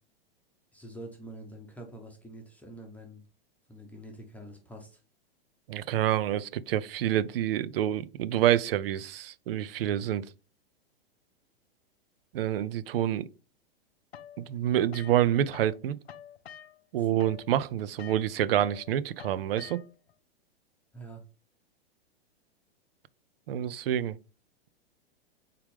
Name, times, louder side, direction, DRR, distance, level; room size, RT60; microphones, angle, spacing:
voice 1, 0.7-3.2 3.7-5.0 17.0-17.1 20.9-21.2, right 1 dB, 5° left, 0.9 m, -46 dB
voice 2, 5.7-10.3 12.3-13.3 14.4-16.0 16.9-19.8 23.5-24.2, right 11 dB, 70° right, 0.4 m, -27 dB
sound 1, 14.1-15.8 16.0-20.1, left 9 dB, 85° left, 0.6 m, -48 dB
4.2 x 3.7 x 3.4 m
hypercardioid pair, 110°, 31 cm